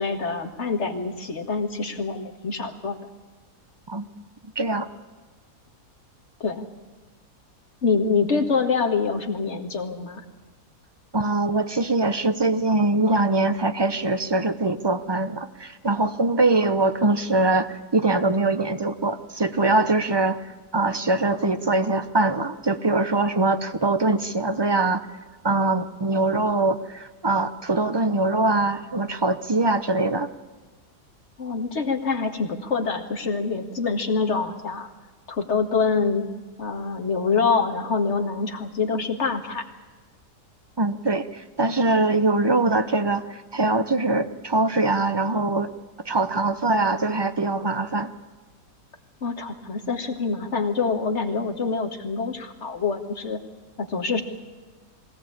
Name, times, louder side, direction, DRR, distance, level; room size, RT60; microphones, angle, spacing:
voice 1, 0.0-3.0 6.4-6.7 7.8-10.2 31.4-34.9 35.3-36.3 36.6-39.6 49.2-53.4 53.8-54.2, left 4 dB, 45° left, 4 dB, 2.0 m, -25 dB
voice 2, 4.6-4.9 11.1-25.1 25.4-30.3 40.8-45.7 46.1-48.1, right 2 dB, 25° right, 11 dB, 0.6 m, -23 dB
21.0 x 17.5 x 8.7 m, 1.4 s
omnidirectional pair, 1.7 m